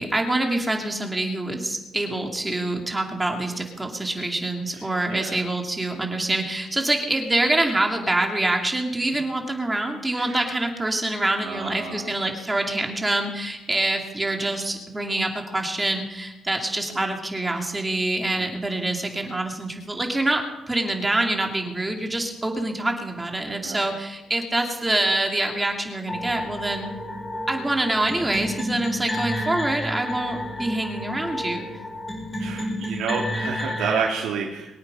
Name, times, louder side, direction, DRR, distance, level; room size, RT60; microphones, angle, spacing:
voice 1, 0.0-26.9 27.5-31.6, right 2 dB, 15° right, 2 dB, 2.7 m, -25 dB
voice 2, 5.1-5.5 9.1-9.2 10.1-10.4 11.4-12.2 18.3-18.5 23.6-23.9 32.4-34.7, right 6 dB, 90° right, -2 dB, 2.3 m, -30 dB
sound 1, 26.1-34.1, left 1 dB, 20° left, 5.2 m, -31 dB
23.0 x 8.8 x 5.5 m, 0.99 s
cardioid pair, 90°, 0 cm